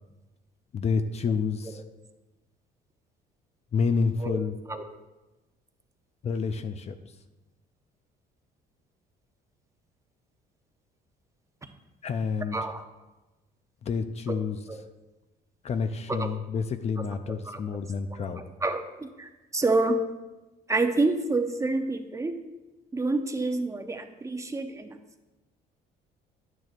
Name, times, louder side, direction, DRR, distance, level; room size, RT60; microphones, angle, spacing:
voice 1, 0.7-1.8 3.7-4.6 6.2-6.9 12.0-12.6 13.8-14.6 15.6-18.4, left 5 dB, 40° left, 9 dB, 0.5 m, -29 dB
voice 2, 12.5-12.8 14.3-14.4 14.7-14.8 16.1-16.3 17.3-17.6 18.1-20.0 20.7-22.4 22.9-25.0, right 3 dB, 15° right, 7 dB, 0.7 m, -28 dB
10.5 x 9.2 x 2.5 m, 1.1 s
cardioid pair, 110°, 17 cm